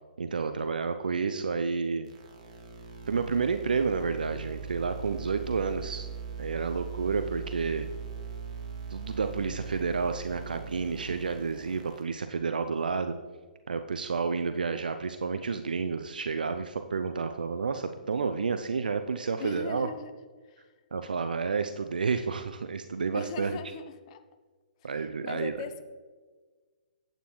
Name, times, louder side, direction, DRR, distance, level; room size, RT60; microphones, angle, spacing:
voice 1, 0.2-2.1 3.1-6.1 6.4-7.9 8.9-13.2 13.7-19.9 20.9-23.5 24.8-25.5, right 5 dB, 75° right, 8 dB, 0.6 m, -30 dB
sound 1, 2.1-12.0, right 6 dB, 50° right, 1.8 m, -40 dB
voice 2, 19.4-20.1 20.4-20.7 23.1-24.2 24.8-25.8, left 6 dB, 40° left, 9 dB, 0.8 m, -40 dB
11.5 x 9.1 x 3.2 m, 1.4 s
figure-of-eight pair, 125°, 5 cm